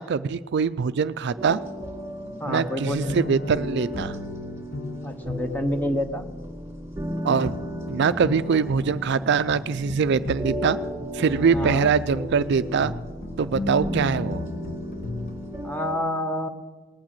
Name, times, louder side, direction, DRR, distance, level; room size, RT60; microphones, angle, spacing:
voice 1, 0.0-1.6 2.5-4.2 7.2-7.6 7.9-10.8 11.1-12.9 13.4-14.5, right 6 dB, 55° right, 13 dB, 0.4 m, -23 dB
sound 1, 1.4-15.9, equal, 15° right, 2.4 m, -35 dB
voice 2, 2.4-3.2 5.0-6.2 11.5-11.9 15.6-16.5, left 1 dB, 10° left, 7 dB, 1.0 m, -28 dB
sound 2, 3.1-15.5, left 2 dB, 50° left, 0.7 m, -36 dB
19.0 x 8.9 x 7.6 m, 1.3 s
head